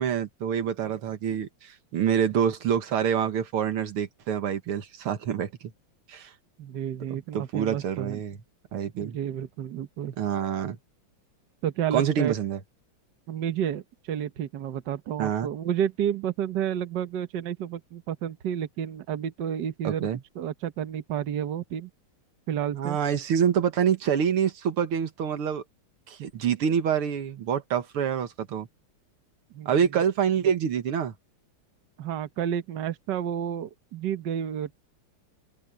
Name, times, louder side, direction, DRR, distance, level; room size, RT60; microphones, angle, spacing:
voice 1, 0.0-5.7 6.1-6.3 7.1-8.4 8.7-9.2 10.2-10.8 11.9-12.6 15.2-15.5 19.8-20.2 22.7-25.6 26.1-28.7 29.7-31.1, right 8 dB, 85° right, 2.3 m, -26 dB
voice 2, 6.6-8.2 9.0-10.1 11.6-12.3 13.3-20.1 20.3-21.9 22.5-23.0 29.5-29.8 32.0-34.8, right 9 dB, 60° right, 1.6 m, -31 dB
open air
omnidirectional pair, 2.4 m